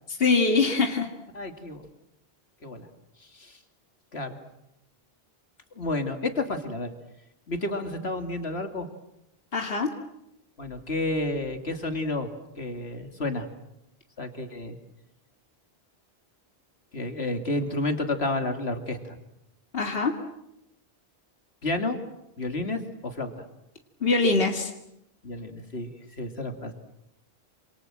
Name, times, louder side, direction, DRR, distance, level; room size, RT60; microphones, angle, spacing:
voice 1, 0.2-1.1 9.5-9.9 19.7-20.1 24.0-24.7, left 4 dB, 70° left, 3 dB, 2.5 m, -23 dB
voice 2, 1.3-1.9 2.6-2.9 3.3-3.6 4.1-4.4 5.8-6.9 7.5-8.9 10.6-12.3 12.6-13.5 14.2-14.8 16.9-19.1 21.6-22.0 22.4-23.4 25.2-25.9 26.2-26.7, left 2 dB, 85° left, 6 dB, 2.9 m, -30 dB
28.0 x 27.0 x 7.7 m, 0.86 s
omnidirectional pair, 1.0 m